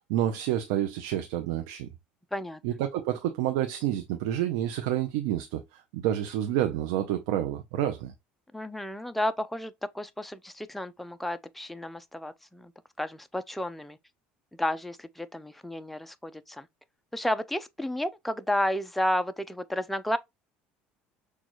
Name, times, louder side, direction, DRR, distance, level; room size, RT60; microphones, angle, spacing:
voice 1, 0.1-1.9 2.6-8.1, right 12 dB, 85° right, 0.6 m, -29 dB
voice 2, 8.5-12.7 13.0-14.0 14.6-16.7 17.1-20.2, left 1 dB, 5° left, 0.5 m, -32 dB
6.2 x 2.3 x 3.0 m
supercardioid pair, 110°, 4 cm